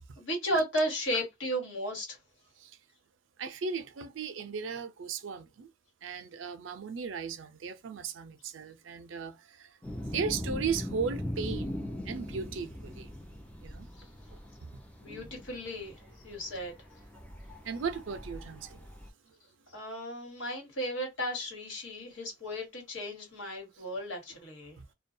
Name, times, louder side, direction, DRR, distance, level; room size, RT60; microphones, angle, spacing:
voice 1, 0.2-2.2 14.0-14.1 15.0-16.7 19.7-24.8, equal, 90° left, 1.4 m, -34 dB
voice 2, 3.4-5.7 6.0-9.7 10.1-13.1 13.6-13.9 17.6-18.9, right 5 dB, 80° right, 0.5 m, -36 dB
sound 1, 9.8-19.1, left 1 dB, 10° left, 0.5 m, -40 dB
2.3 x 2.2 x 2.6 m
head